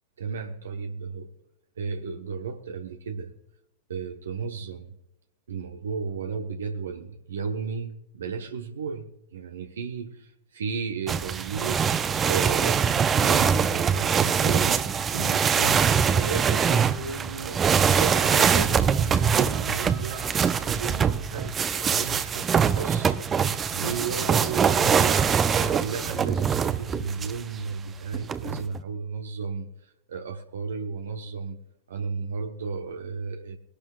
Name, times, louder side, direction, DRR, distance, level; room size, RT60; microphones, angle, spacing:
voice 1, 0.2-1.3 1.8-3.3 3.9-5.0 5.5-11.8 12.2-17.6 17.9-20.3 20.7-23.2 23.7-25.2 25.6-31.6 31.9-33.6, right 5 dB, 65° right, 4 dB, 1.1 m, -34 dB
sound 1, 11.1-27.4 28.1-28.8, right 7 dB, 20° right, 0.8 m, -23 dB
sound 2, 13.2-16.8 17.9-18.6 18.9-22.1 23.0-25.3, right 9 dB, 45° right, 1.8 m, -46 dB
21.5 x 11.5 x 2.4 m, 0.87 s
figure-of-eight pair, 90°, 0 cm